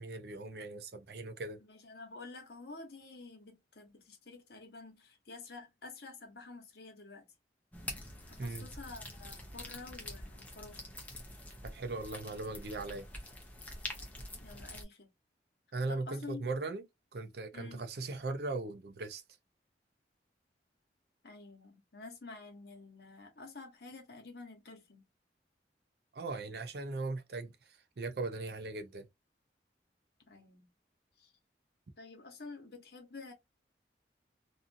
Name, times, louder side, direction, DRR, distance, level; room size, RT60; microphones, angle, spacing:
voice 1, 0.0-1.6 8.4-8.7 11.6-13.1 15.7-16.8 17.1-19.2 26.1-29.1, right 3 dB, 65° right, 0.5 m, -39 dB
voice 2, 1.6-7.3 8.3-10.8 14.4-15.1 15.9-16.4 17.5-17.9 21.2-25.1 30.3-30.7 31.2-31.3 32.0-33.3, left 3 dB, 65° left, 0.9 m, -49 dB
sound 1, 7.7-14.8, left 1 dB, 10° left, 0.6 m, -46 dB
2.6 x 2.5 x 2.5 m
head